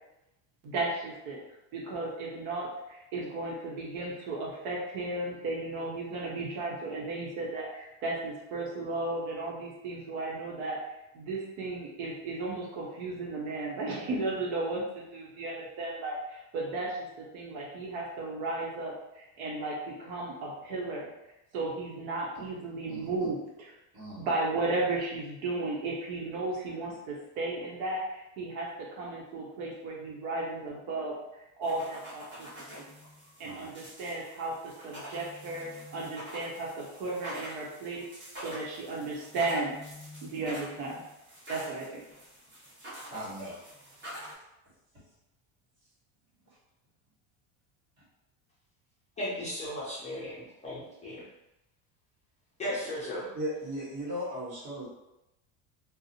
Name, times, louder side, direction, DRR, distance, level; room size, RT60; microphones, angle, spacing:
voice 1, 0.6-1.4 1.7-10.8 11.1-21.1 21.5-23.7 24.2-31.2 31.6-32.5 32.8-32.9 33.4-38.0 38.4-39.7 40.2-41.0 41.5-42.0, right 2 dB, 80° right, 0.8 m, -34 dB
voice 2, 22.9-23.3 23.9-24.2 33.4-33.7 43.1-43.6 53.3-54.9, equal, 45° right, 1.4 m, -37 dB
sound 1, 31.6-44.3, equal, 25° right, 0.9 m, -46 dB
voice 3, 49.2-51.2 52.6-53.3, left 1 dB, 15° left, 0.4 m, -36 dB
2.5 x 2.0 x 2.7 m
cardioid pair, 140°, 42 cm